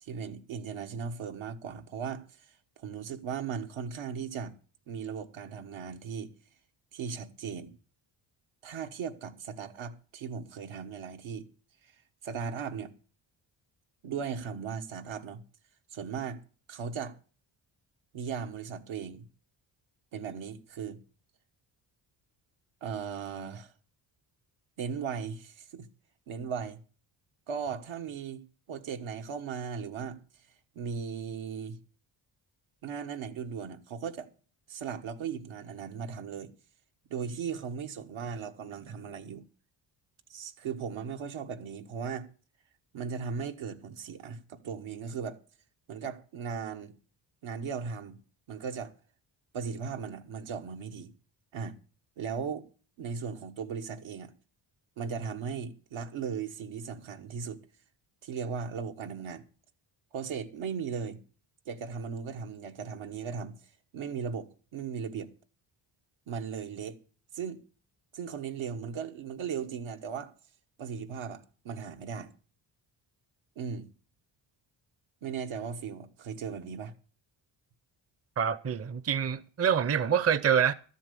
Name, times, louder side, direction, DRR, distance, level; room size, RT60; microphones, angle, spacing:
voice 1, 0.0-2.2 2.8-4.5 4.9-6.3 6.9-7.8 8.6-11.4 11.8-11.9 12.2-12.9 14.0-15.4 15.9-16.4 16.7-17.2 18.1-19.2 20.1-21.0 22.8-23.7 24.8-25.9 26.3-26.8 27.5-28.4 28.7-30.2 30.7-31.8 32.8-34.3 34.7-36.5 37.1-39.4 40.3-42.3 42.9-45.4 45.9-46.9 47.4-48.2 48.5-48.9 49.5-51.1 51.5-51.8 52.2-52.7 53.0-54.3 55.0-57.6 58.2-59.4 60.1-61.2 61.7-63.6 63.9-65.3 66.3-67.0 67.3-67.6 68.1-70.3 70.8-72.3 73.5-73.9 75.2-76.9, right 6 dB, 80° right, 1.5 m, -37 dB
voice 2, 78.4-80.7, right 8 dB, 30° right, 0.6 m, -26 dB
13.0 x 7.4 x 6.9 m
cardioid pair, 100°, 47 cm